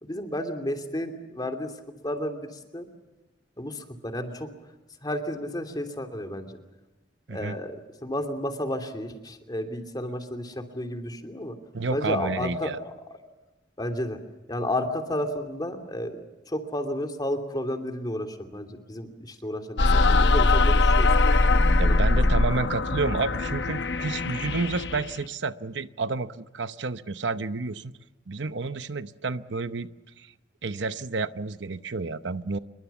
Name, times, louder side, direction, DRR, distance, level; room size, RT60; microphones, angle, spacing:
voice 1, 0.0-1.7 2.0-2.9 3.6-4.5 5.0-6.6 7.3-11.5 11.9-12.9 13.8-14.2 14.5-21.1 21.8-22.0, left 1 dB, 25° left, 6 dB, 2.8 m, -32 dB
voice 2, 11.7-12.8 21.8-27.9 28.3-29.9 30.2-30.3 30.6-32.6, right 3 dB, 85° right, 12 dB, 0.9 m, -30 dB
sound 1, 19.8-25.2, left 2 dB, 70° left, 1.0 m, -21 dB
26.5 x 23.0 x 7.2 m, 1.1 s
head